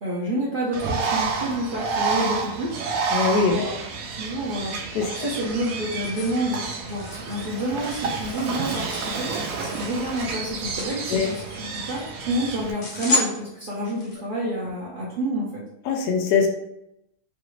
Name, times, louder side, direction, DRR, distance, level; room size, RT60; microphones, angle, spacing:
voice 1, 0.0-2.8 3.5-3.7 4.1-15.6, right 1 dB, 50° right, -7 dB, 0.6 m, -29 dB
Bird, 0.7-12.7, right 4 dB, 70° right, 0.9 m, -30 dB
voice 2, 3.1-3.5 4.9-5.3 11.1-11.3 15.8-16.5, left 5 dB, 85° left, 2 dB, 1.1 m, -22 dB
sound 1, 4.7-14.1, left 3 dB, 65° left, 1.2 m, -34 dB
3.2 x 2.4 x 3.1 m, 0.82 s
omnidirectional pair, 1.6 m